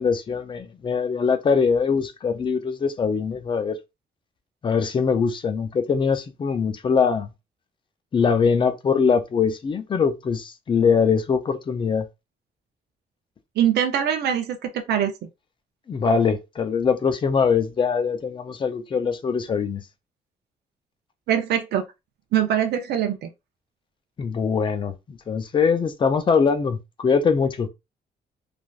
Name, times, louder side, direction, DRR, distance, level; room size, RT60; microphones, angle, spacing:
voice 1, 0.0-3.8 4.6-7.3 8.1-12.0 15.9-19.8 24.2-27.7, left 5 dB, 30° left, 0.4 m, -22 dB
voice 2, 13.6-15.3 21.3-21.9 22.3-23.3, right 9 dB, 80° right, 0.5 m, -23 dB
3.2 x 2.5 x 2.3 m
cardioid pair, 160°, 17 cm